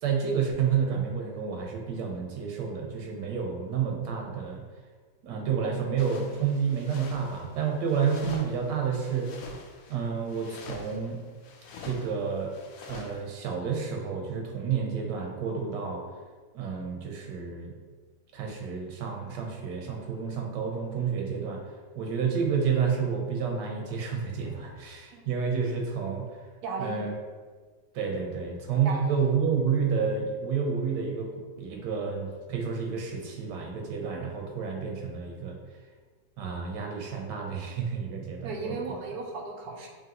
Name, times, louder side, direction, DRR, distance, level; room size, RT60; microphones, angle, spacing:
voice 1, 0.0-4.6 5.2-9.3 9.9-11.2 11.8-12.5 12.9-16.0 16.5-17.7 18.3-26.5 26.8-27.1 27.9-35.6 36.4-38.8, right 6 dB, 90° right, 1 dB, 1.4 m, -30 dB
sound 1, 6.0-13.2, left 4 dB, 70° left, 0.9 m, -45 dB
voice 2, 26.6-27.1 28.8-29.3 38.4-39.9, right 3 dB, 70° right, 1 dB, 1.1 m, -35 dB
5.1 x 2.8 x 2.8 m, 1.4 s
omnidirectional pair, 1.8 m